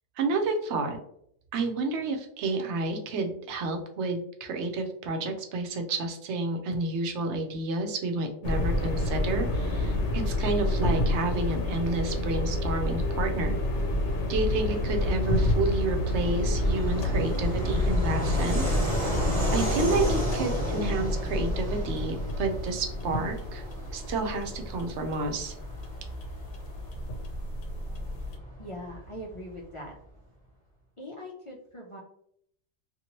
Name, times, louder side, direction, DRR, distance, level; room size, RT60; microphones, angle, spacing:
voice 1, 0.2-1.0 1.5-13.6 14.3-19.1 19.5-23.6 23.9-25.5, right 3 dB, 80° right, 4 dB, 0.9 m, -30 dB
sound 1, 8.4-28.4, left 1 dB, 80° left, 0.9 m, -29 dB
Fixed-wing aircraft airplane, 13.4-29.6, right 1 dB, 35° right, 1.3 m, -35 dB
voice 2, 28.6-29.9 31.0-32.0, equal, 40° left, -3 dB, 0.4 m, -41 dB
2.9 x 2.5 x 2.8 m, 0.69 s
omnidirectional pair, 1.2 m